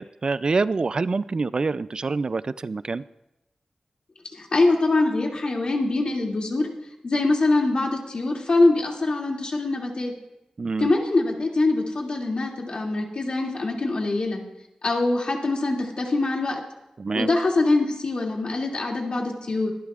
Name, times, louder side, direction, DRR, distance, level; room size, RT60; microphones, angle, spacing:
voice 1, 0.0-3.0 10.6-10.9 17.0-17.3, right 4 dB, 45° right, 16 dB, 0.3 m, -26 dB
voice 2, 4.3-6.7 7.0-10.1 10.8-14.4 14.8-16.6 17.1-19.7, left 2 dB, 55° left, 0 dB, 2.5 m, -23 dB
24.0 x 11.5 x 2.4 m, 0.92 s
wide cardioid pair, 120°, 2 cm